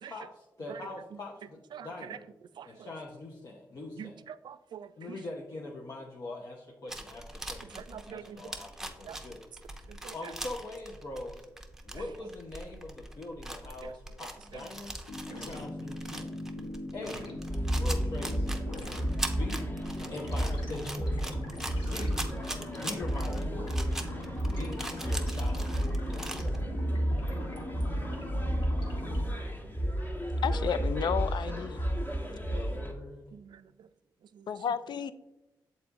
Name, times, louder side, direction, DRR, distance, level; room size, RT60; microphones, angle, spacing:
voice 1, 0.0-2.2 2.6-4.2 5.0-9.4 10.1-11.5 11.8-15.0 15.2-16.4 16.9-17.3 17.7-18.7 19.3-19.7 20.1-21.3 21.7-22.2 22.7-23.8 24.5-25.7 32.3-33.3, left 2 dB, 50° left, 0.8 m, -42 dB
voice 2, 1.7-2.2 2.6-2.9 4.0-5.2 7.7-8.5 9.0-9.2 9.9-10.3 13.8-13.9 14.5-14.7 33.3-33.9 34.3-34.5, right 8 dB, 65° right, 0.3 m, -45 dB
sound 1, 6.9-26.6, right 1 dB, 5° right, 0.8 m, -41 dB
sound 2, 15.1-29.2, left 1 dB, 80° left, 1.1 m, -41 dB
sound 3, 17.5-32.9, equal, 25° left, 1.2 m, -32 dB
voice 3, 30.4-31.9 34.5-35.1, left 7 dB, 65° left, 0.4 m, -32 dB
6.8 x 4.1 x 3.5 m
cardioid pair, 55°, 8 cm